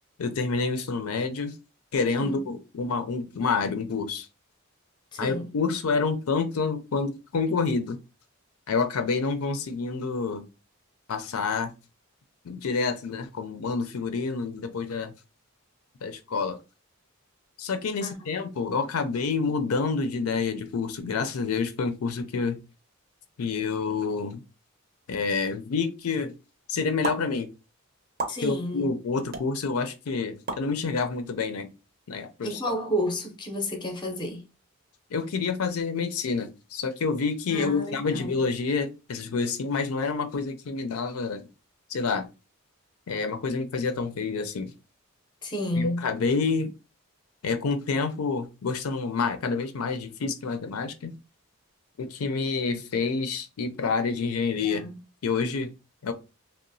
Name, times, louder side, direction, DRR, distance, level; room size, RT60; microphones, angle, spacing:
voice 1, 0.2-1.5 1.9-4.3 5.2-8.0 8.7-10.5 11.1-11.7 12.4-15.1 16.0-16.6 17.6-22.6 23.4-24.4 25.1-26.3 26.7-27.5 28.4-31.7 32.1-32.7 35.1-41.4 41.9-42.3 43.1-44.7 45.8-46.7 47.4-51.1 52.0-54.8 55.2-55.7 56.0-56.1, left 4 dB, 80° left, 0.5 m, -28 dB
voice 2, 2.2-2.5 5.1-5.5 18.0-18.3 28.3-28.9 32.4-34.5 37.5-38.4 45.4-46.1 54.5-55.0, equal, 20° left, 0.5 m, -31 dB
sound 1, 27.0-27.2 28.2-28.4 29.3-29.4 30.5-30.6, right 3 dB, 45° right, 0.6 m, -30 dB
2.9 x 2.1 x 2.5 m
head